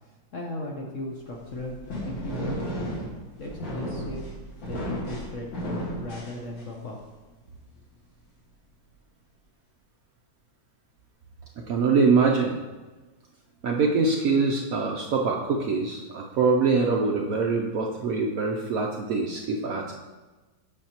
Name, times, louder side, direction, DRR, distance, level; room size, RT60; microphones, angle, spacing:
voice 1, 0.3-2.9 3.4-4.3 4.6-7.0, left 1 dB, 55° left, 0 dB, 0.9 m, -37 dB
sound 1, 1.3-6.9, equal, 80° left, 2.4 m, -34 dB
voice 2, 11.7-12.5 13.6-19.9, right 4 dB, 70° right, 0 dB, 0.8 m, -24 dB
8.5 x 6.2 x 2.9 m, 1.2 s
omnidirectional pair, 2.1 m